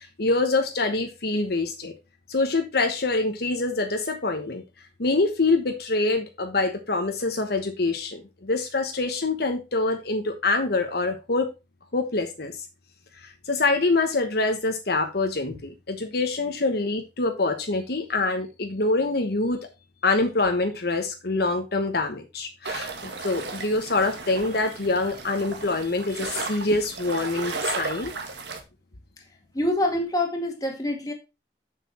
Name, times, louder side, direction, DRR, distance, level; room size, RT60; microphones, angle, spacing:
voice 1, 0.0-1.9 2.3-4.6 5.0-11.5 11.9-12.6 13.2-19.6 20.0-28.1, left 3 dB, 60° left, 1.1 m, -25 dB
sound 1, 22.6-28.6, right 4 dB, 70° right, 1.8 m, -34 dB
voice 2, 29.5-31.1, left 1 dB, 20° left, 2.0 m, -25 dB
7.3 x 6.7 x 4.3 m
head